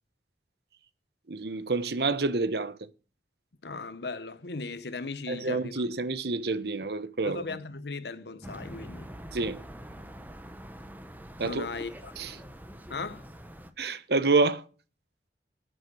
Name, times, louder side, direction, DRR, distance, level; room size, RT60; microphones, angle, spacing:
voice 1, 1.3-2.8 5.3-7.4 9.3-9.6 11.4-11.7 12.2-12.3 13.8-14.6, right 3 dB, 65° right, 1.0 m, -28 dB
voice 2, 3.6-5.8 7.2-9.1 11.4-12.4 12.9-13.3, left 3 dB, 70° left, 0.9 m, -38 dB
sound 1, 8.4-13.7, equal, 10° right, 1.0 m, -45 dB
9.9 x 9.3 x 6.3 m
head